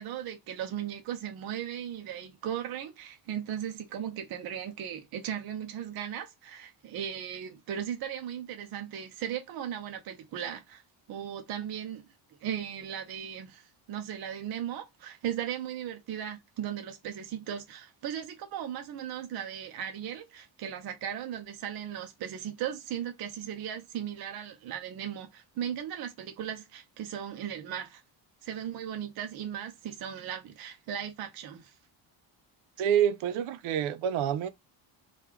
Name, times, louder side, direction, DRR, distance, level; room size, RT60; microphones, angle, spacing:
voice 1, 0.0-10.8 11.1-12.0 12.4-28.0 28.4-31.8, right 9 dB, 50° right, 0.5 m, -37 dB
voice 2, 32.8-34.5, right 9 dB, 90° right, 0.6 m, -27 dB
3.0 x 2.3 x 3.5 m
cardioid pair, 180°, 47 cm